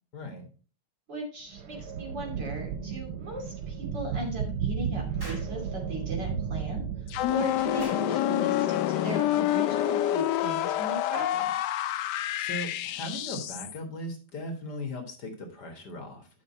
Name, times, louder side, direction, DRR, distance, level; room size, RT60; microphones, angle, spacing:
voice 1, 0.1-0.5 12.4-16.3, left 1 dB, 50° left, 3 dB, 2.0 m, -38 dB
voice 2, 1.1-6.8 7.3-11.5, right 1 dB, 55° right, 0 dB, 3.3 m, -37 dB
sound 1, 1.5-7.7, right 7 dB, 85° right, 1.7 m, -34 dB
Explosion, 5.2-5.5 7.8-8.1, equal, 10° right, 2.0 m, -44 dB
sound 2, 7.1-13.8, left 12 dB, 75° left, 1.0 m, -28 dB
9.9 x 5.6 x 4.2 m, 0.38 s
omnidirectional pair, 2.3 m